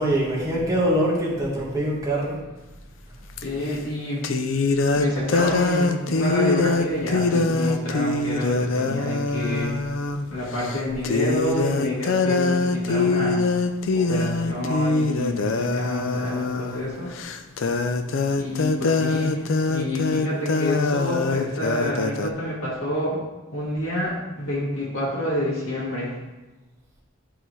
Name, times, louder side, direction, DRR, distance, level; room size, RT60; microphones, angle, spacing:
voice 1, 0.0-2.4, right 1 dB, 15° right, -4 dB, 1.5 m, -23 dB
voice 2, 3.4-4.3 5.0-9.8 10.3-13.5 13.9-17.1 18.4-23.2 23.5-26.2, left 1 dB, 80° left, -6 dB, 1.8 m, -28 dB
sound 1, 3.4-3.5 4.2-10.2 10.6-10.8 11.0-22.3, left 3 dB, 65° left, 0.5 m, -23 dB
10.5 x 3.8 x 3.1 m, 1.2 s
head